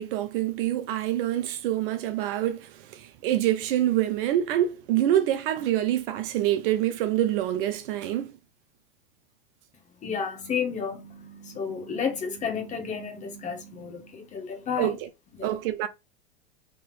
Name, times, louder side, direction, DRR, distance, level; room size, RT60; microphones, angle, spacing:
voice 1, 0.0-8.3 14.8-15.0 15.4-15.9, right 12 dB, 55° right, 0.5 m, -26 dB
voice 2, 10.0-15.0 15.3-15.5, left 6 dB, 20° left, 0.9 m, -32 dB
3.5 x 2.7 x 2.4 m
hypercardioid pair, 105°, 33 cm